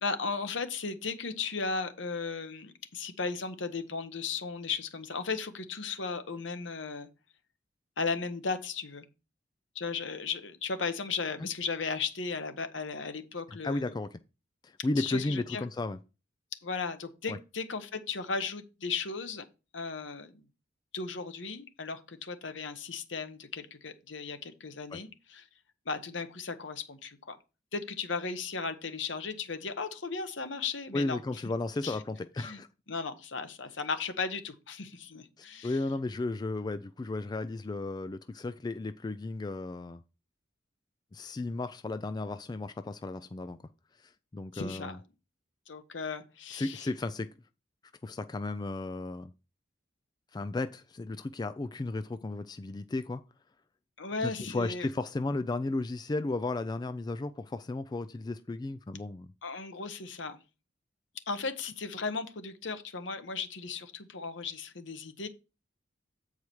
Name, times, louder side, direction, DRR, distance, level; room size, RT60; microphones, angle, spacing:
voice 1, 0.0-7.1 8.0-9.1 9.7-13.9 15.0-15.6 16.6-19.4 19.7-20.4 20.9-25.5 25.9-27.4 27.7-31.2 31.8-32.0 32.4-32.6 32.9-35.8 44.5-45.0 45.7-46.9 54.0-54.9 59.4-60.4 61.3-65.3, left 4 dB, 75° left, 1.1 m, -36 dB
voice 2, 13.6-14.2 14.6-16.0 17.3-17.4 24.9-25.0 30.9-32.7 35.4-40.0 41.1-43.6 44.3-45.0 46.5-47.3 48.0-49.3 50.3-53.2 54.2-59.3, left 2 dB, 20° left, 0.3 m, -34 dB
8.4 x 4.8 x 4.5 m
head